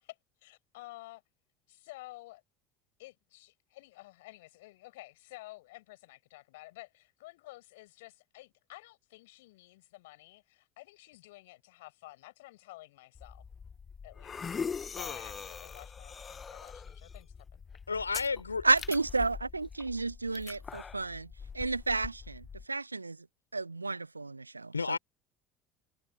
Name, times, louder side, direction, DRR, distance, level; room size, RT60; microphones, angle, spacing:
voice 1, 0.4-1.2 1.7-2.4 3.0-13.4 14.0-17.6, left 19 dB, 65° left, 7.2 m, -51 dB
sound 1, 13.1-22.6, left 6 dB, 25° left, 1.0 m, -43 dB
voice 2, 17.9-18.7 24.7-25.0, left 4 dB, 85° left, 3.7 m, -32 dB
voice 3, 18.6-21.3 21.5-23.2 23.5-25.0, right 3 dB, 85° right, 0.9 m, -31 dB
figure-of-eight pair, 65°, 0 cm